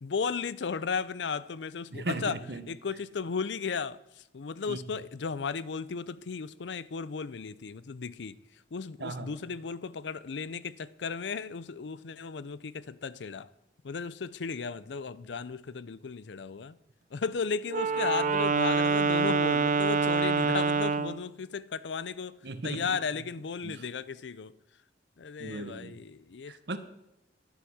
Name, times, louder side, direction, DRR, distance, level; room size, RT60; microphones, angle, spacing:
voice 1, 0.0-2.4 2.7-4.0 4.3-8.3 8.7-13.5 13.8-16.8 17.1-22.4 22.6-24.5 25.2-26.5, left 5 dB, 80° left, 0.5 m, -35 dB
voice 2, 1.9-2.7 4.7-4.8 9.0-9.3 22.4-23.0 23.6-23.8 25.4-26.0 26.5-26.8, right 2 dB, 65° right, 1.1 m, -37 dB
Wind instrument woodwind instrument, 17.7-21.2, right 4 dB, 45° right, 0.6 m, -26 dB
11.5 x 10.0 x 6.3 m
head